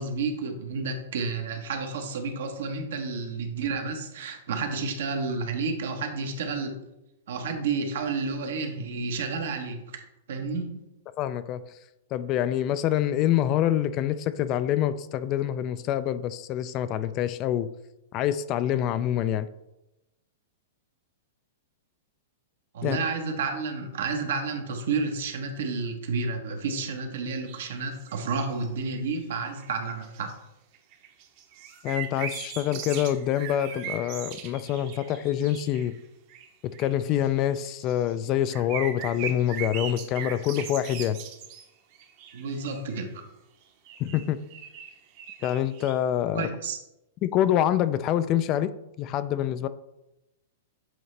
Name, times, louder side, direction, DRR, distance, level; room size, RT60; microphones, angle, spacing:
voice 1, 0.0-6.8 7.3-9.9 10.3-10.8 22.7-30.3 42.3-43.2 46.3-46.8, right 4 dB, 70° right, 4 dB, 1.2 m, -31 dB
voice 2, 11.2-11.6 12.1-17.7 18.1-19.5 22.8-23.0 31.8-35.9 36.8-41.2 44.0-44.4 45.4-46.5 47.2-48.7 49.0-49.7, left 11 dB, 35° left, 13 dB, 0.3 m, -26 dB
sound 1, 27.5-29.1 29.6-30.3 30.7-36.0 36.3-36.5 36.7-38.1 38.5-41.6 41.9-43.0 43.9-45.9, right 8 dB, 45° right, 1.0 m, -39 dB
7.8 x 3.9 x 3.3 m, 0.89 s
hypercardioid pair, 145°, 0 cm